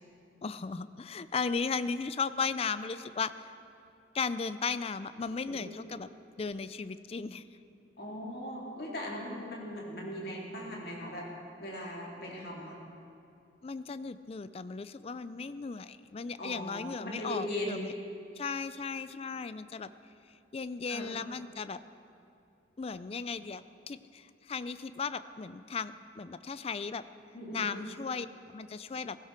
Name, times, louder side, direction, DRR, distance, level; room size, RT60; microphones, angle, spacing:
voice 1, 0.4-3.5 4.1-6.1 6.4-7.4 13.6-17.9 18.4-19.9 20.5-21.8 22.8-27.0 27.5-29.2, left 5 dB, 30° left, 14 dB, 0.4 m, -36 dB
voice 2, 8.0-11.3 11.6-12.8 16.4-17.9 20.9-21.1 27.3-27.7, equal, 55° left, -3 dB, 2.4 m, -39 dB
16.5 x 16.0 x 4.4 m, 2.7 s
head